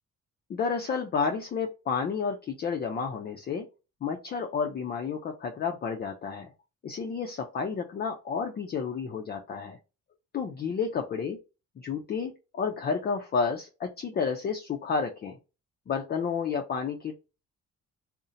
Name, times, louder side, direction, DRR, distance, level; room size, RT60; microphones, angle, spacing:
voice 1, 0.5-3.7 4.0-6.5 6.8-9.8 10.3-11.4 11.8-15.4 15.9-17.2, left 5 dB, 35° left, 3 dB, 0.4 m, -31 dB
2.7 x 2.1 x 2.5 m, 0.30 s
cardioid pair, 90°, 30 cm